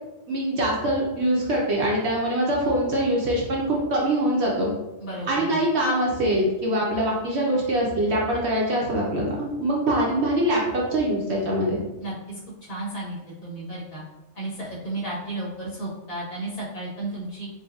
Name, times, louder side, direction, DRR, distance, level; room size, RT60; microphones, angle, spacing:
voice 1, 0.3-4.7 5.3-11.8, right 1 dB, 60° right, -3 dB, 0.9 m, -23 dB
voice 2, 5.0-5.6 12.0-12.1 12.6-14.0 14.4-17.5, right 2 dB, 55° left, -9 dB, 1.7 m, -33 dB
4.7 x 2.2 x 2.3 m, 1.1 s
omnidirectional pair, 1.4 m